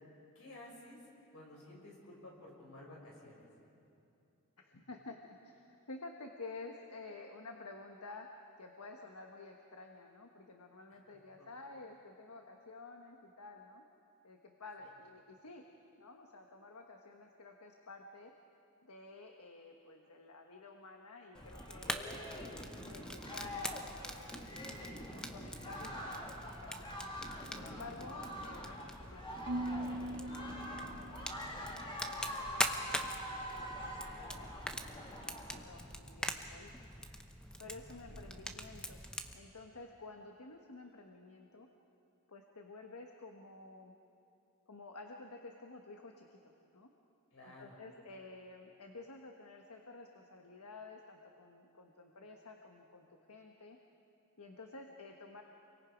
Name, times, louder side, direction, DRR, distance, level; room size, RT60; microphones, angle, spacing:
voice 1, 0.3-1.0 1.3-3.5 24.8-25.0 37.9-38.3 47.3-47.8, left 1 dB, 70° left, -2 dB, 5.9 m, -54 dB
voice 2, 4.6-8.3 8.6-13.8 14.2-15.6 16.0-18.3 18.8-24.4 24.8-26.7 27.5-31.4 31.9-36.7 37.6-39.0 39.3-41.7 42.3-43.9 44.7-46.9 47.4-53.8 54.4-55.4, left 3 dB, 85° left, 3 dB, 1.4 m, -52 dB
sound 1, 21.3-35.6, equal, 20° left, 2.2 m, -45 dB
Fire, 21.4-39.3, equal, 5° left, 0.9 m, -44 dB
Marimba xylophone / Wood, 29.5-31.7, right 1 dB, 50° right, 0.7 m, -41 dB
29.0 x 23.5 x 5.2 m, 2.7 s
head